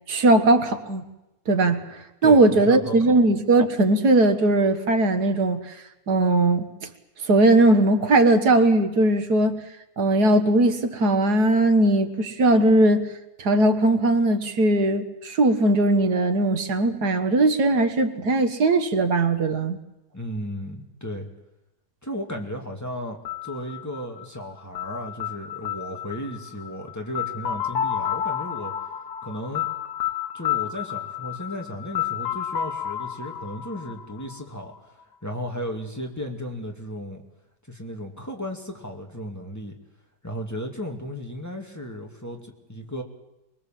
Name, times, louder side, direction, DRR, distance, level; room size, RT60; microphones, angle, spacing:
voice 1, 0.1-1.0 1.5-5.7 6.1-6.7 7.3-9.6 10.0-13.1 13.4-19.8, right 2 dB, 75° right, 2.1 m, -19 dB
voice 2, 2.2-3.2 20.1-21.3 22.0-28.7 29.2-29.7 30.3-35.0 35.2-37.2 37.7-39.7 40.2-43.0, equal, 10° left, 2.3 m, -34 dB
sound 1, 23.3-35.0, left 10 dB, 80° left, 1.9 m, -31 dB
24.5 x 20.5 x 7.6 m
omnidirectional pair, 1.7 m